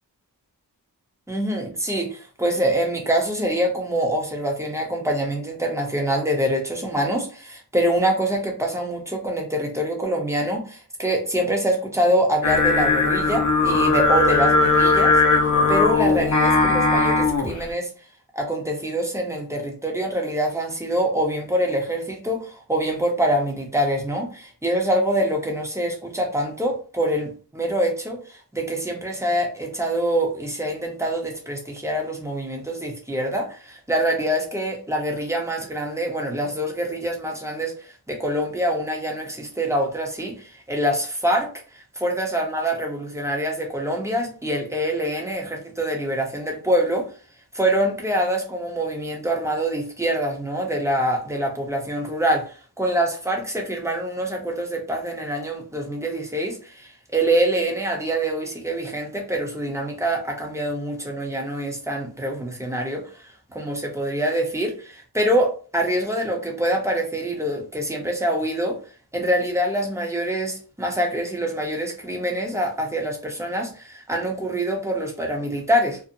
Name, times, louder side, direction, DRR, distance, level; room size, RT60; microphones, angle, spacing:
voice 1, 1.3-17.9 18.3-41.5 41.7-47.1 47.5-68.8 69.1-76.0, right 1 dB, 5° right, 1 dB, 0.6 m, -25 dB
Singing, 12.4-17.6, left 3 dB, 50° left, 0.6 m, -18 dB
2.6 x 2.0 x 2.6 m, 0.38 s
wide cardioid pair, 95°, 39 cm